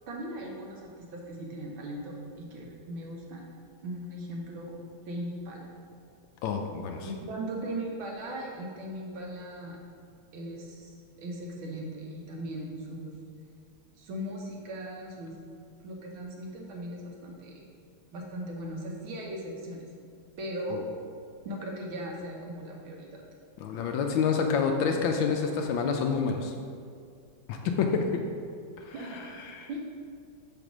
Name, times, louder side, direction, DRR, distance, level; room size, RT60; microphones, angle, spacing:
voice 1, 0.1-3.4 3.8-4.8 5.1-5.7 7.0-9.8 10.3-13.2 14.0-15.3 15.8-17.6 18.1-19.9 20.4-20.8 21.5-23.2 28.9-29.3 29.7-29.8, right 1 dB, 70° right, -1 dB, 1.7 m, -38 dB
voice 2, 6.4-7.1 23.6-26.5 27.5-28.0 28.8-29.8, left 6 dB, 75° left, 3 dB, 1.2 m, -28 dB
5.1 x 4.2 x 6.0 m, 2.3 s
omnidirectional pair, 2.3 m